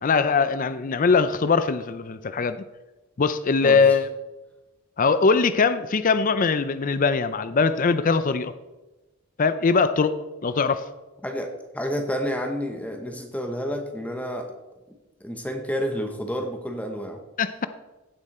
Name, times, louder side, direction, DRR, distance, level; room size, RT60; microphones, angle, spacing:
voice 1, 0.0-2.6 3.2-4.1 5.0-8.5 9.4-10.1 10.4-10.8 17.4-17.7, left 4 dB, 40° left, 12 dB, 0.5 m, -21 dB
voice 2, 3.6-4.0 11.2-14.5 15.2-17.2, equal, 5° left, 4 dB, 1.0 m, -30 dB
15.5 x 7.3 x 4.3 m, 1.1 s
head